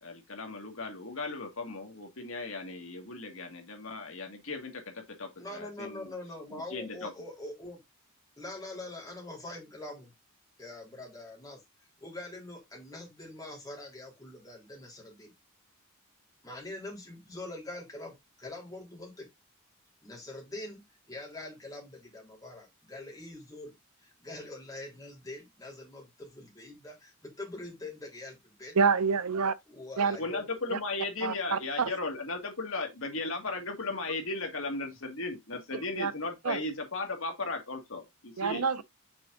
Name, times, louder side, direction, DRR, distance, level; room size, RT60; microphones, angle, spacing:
voice 1, 0.0-6.1 6.5-7.1 30.2-38.7, left 3 dB, 65° left, 1.8 m, -36 dB
voice 2, 5.4-7.8 8.4-10.1 10.6-15.3 16.4-19.3 20.0-20.8 21.1-23.7 24.0-28.8 29.7-30.5, left 2 dB, 15° left, 3.3 m, -44 dB
voice 3, 28.7-29.5 30.0-30.2 30.7-30.8 31.2-31.9 35.7-36.1 36.4-36.6 38.4-38.8, right 5 dB, 90° right, 0.6 m, -27 dB
6.1 x 4.4 x 3.8 m
head